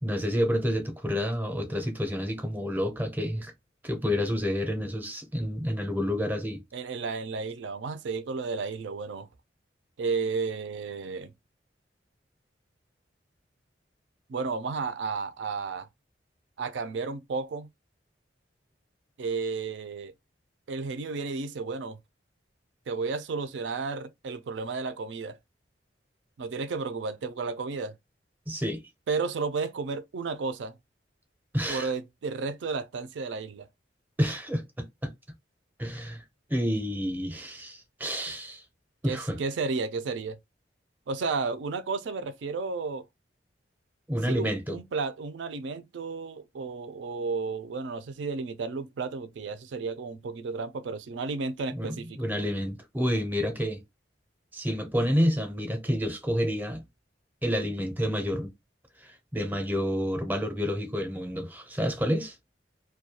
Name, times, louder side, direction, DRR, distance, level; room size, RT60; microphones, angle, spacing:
voice 1, 0.0-3.5 3.8-6.6 28.5-28.8 31.5-31.9 34.2-35.1 35.8-36.2 36.5-38.6 39.0-39.4 44.1-44.8 51.7-53.8 54.5-56.8 57.4-58.5 59.0-62.3, equal, 10° right, 0.5 m, -29 dB
voice 2, 6.7-9.3 10.0-11.3 14.3-15.9 16.6-17.7 19.2-20.1 20.7-22.0 22.9-25.4 26.4-27.9 29.1-30.7 31.7-33.7 39.0-40.4 41.1-43.1 44.2-52.2, right 4 dB, 80° right, 0.4 m, -32 dB
2.3 x 2.2 x 2.7 m
head